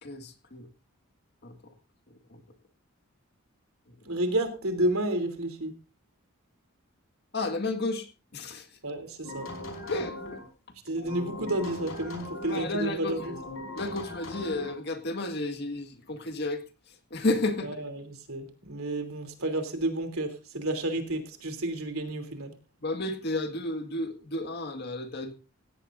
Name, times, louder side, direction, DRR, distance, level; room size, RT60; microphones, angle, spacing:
voice 1, 0.0-0.7 1.4-1.7 2.3-2.4 3.9-4.0 7.3-8.1 8.3-8.7 9.9-10.4 12.4-13.4 13.8-16.6 17.1-17.8 22.8-25.3, left 2 dB, 50° left, 6 dB, 1.9 m, -32 dB
voice 2, 4.1-5.7 8.8-9.5 10.8-13.3 17.6-17.9 18.3-22.5, right 1 dB, 80° right, 6 dB, 3.1 m, -31 dB
sound 1, 9.2-10.5 11.0-12.7 13.1-14.8, left 1 dB, 70° left, 4.9 m, -40 dB
17.5 x 16.5 x 2.6 m, 0.34 s
head